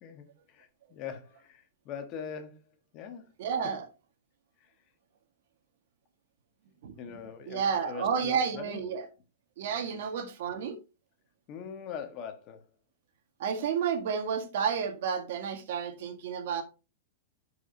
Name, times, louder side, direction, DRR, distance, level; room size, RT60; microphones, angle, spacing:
voice 1, 0.0-2.6 2.9-3.2 4.6-4.7 7.0-8.8 11.5-12.6, left 7 dB, 35° left, 1.3 m, -42 dB
voice 2, 3.4-3.9 6.8-7.2 7.5-9.0 9.6-10.8 13.4-16.6, right 6 dB, 65° right, 1.6 m, -31 dB
11.0 x 4.9 x 2.7 m
supercardioid pair, 150°, 0 cm